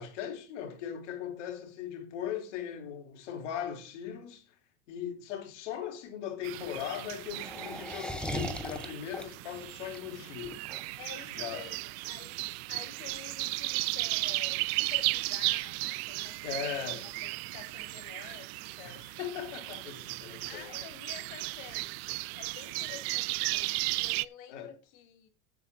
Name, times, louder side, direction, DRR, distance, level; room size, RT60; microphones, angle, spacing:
voice 1, 0.0-4.6 4.9-10.6 11.3-11.7 16.4-17.1 18.8-20.7 22.9-23.0 24.5-24.7, left 9 dB, 75° left, 3.5 m, -39 dB
sound 1, 6.4-11.6, left 1 dB, ahead, 1.4 m, -39 dB
sound 2, 6.4-24.2, right 23 dB, 55° right, 0.6 m, -35 dB
voice 2, 11.0-12.4 12.7-19.1 20.5-25.3, left 9 dB, 60° left, 2.7 m, -50 dB
16.0 x 8.3 x 2.8 m
supercardioid pair, 130°, 37 cm